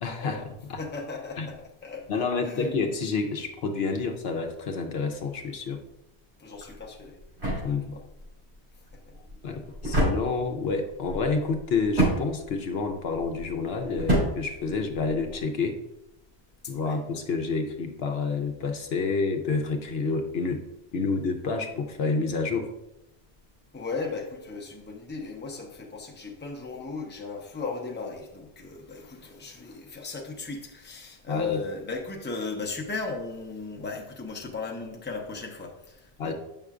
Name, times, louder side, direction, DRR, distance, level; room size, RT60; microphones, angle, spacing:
voice 1, 0.0-0.4 0.7-0.8 1.4-1.5 2.1-5.8 7.6-8.0 9.4-15.8 16.7-20.6 20.9-22.7 31.3-31.6 36.2-36.3, left 4 dB, 70° left, 4 dB, 0.9 m, -29 dB
voice 2, 0.8-2.1 2.4-2.7 6.4-7.2 7.6-8.0 9.5-9.6 16.6-17.0 23.7-36.3, left 4 dB, 10° left, 0 dB, 0.7 m, -36 dB
sound 1, 6.5-15.4, right 1 dB, 70° right, 2.9 m, -30 dB
7.8 x 5.6 x 2.4 m, 0.89 s
omnidirectional pair, 1.1 m